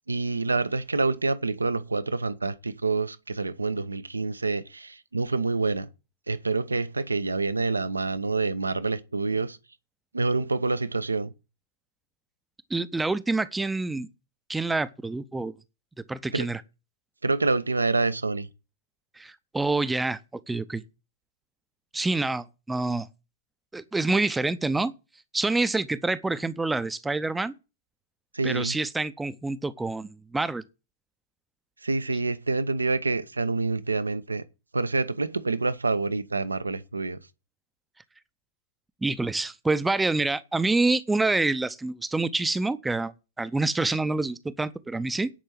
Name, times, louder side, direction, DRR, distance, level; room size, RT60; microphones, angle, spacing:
voice 1, 0.1-5.9 6.3-9.6 10.1-11.3 16.3-16.5 17.2-18.5 28.3-28.7 31.8-34.4 34.7-37.2, right 3 dB, 80° right, 0.8 m, -27 dB
voice 2, 12.7-14.1 14.5-15.5 16.1-16.6 19.2-20.2 20.5-20.8 21.9-23.1 23.7-24.9 25.3-27.5 28.4-30.6 39.0-45.3, right 3 dB, 5° right, 0.6 m, -27 dB
10.0 x 5.4 x 7.7 m
figure-of-eight pair, 100°, 0 cm